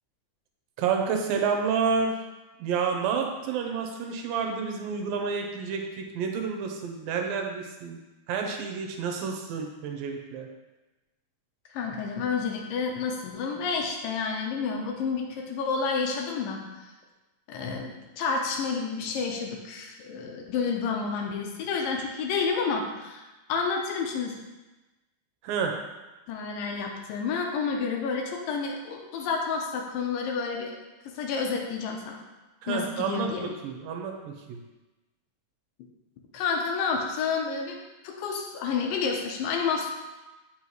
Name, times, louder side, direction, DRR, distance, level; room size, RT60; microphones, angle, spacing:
voice 1, 0.8-2.2 2.6-8.0 8.3-10.5 25.4-25.8 32.6-34.6, right 6 dB, 80° right, 3 dB, 2.5 m, -29 dB
voice 2, 11.7-16.6 17.5-23.2 23.5-24.3 26.3-30.8 31.1-32.2 32.7-33.5 36.3-37.8 38.0-39.9, left 5 dB, 80° left, 1 dB, 2.4 m, -30 dB
8.6 x 5.8 x 3.1 m, 1.1 s
omnidirectional pair, 4.1 m